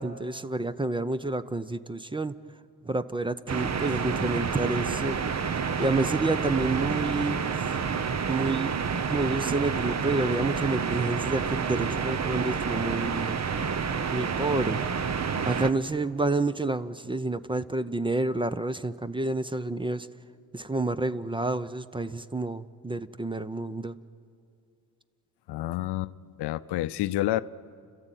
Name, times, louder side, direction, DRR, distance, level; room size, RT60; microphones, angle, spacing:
voice 1, 0.0-2.4 2.8-5.2 5.8-7.4 8.3-8.7 9.1-13.4 14.1-14.9 15.4-20.1 20.5-24.0, right 2 dB, 10° right, 0.7 m, -29 dB
sound 1, 3.5-15.7, right 6 dB, 40° right, 1.1 m, -29 dB
voice 2, 25.5-26.1 26.4-27.4, left 15 dB, 75° left, 0.7 m, -28 dB
30.0 x 13.5 x 9.1 m
cardioid pair, 75°, 40 cm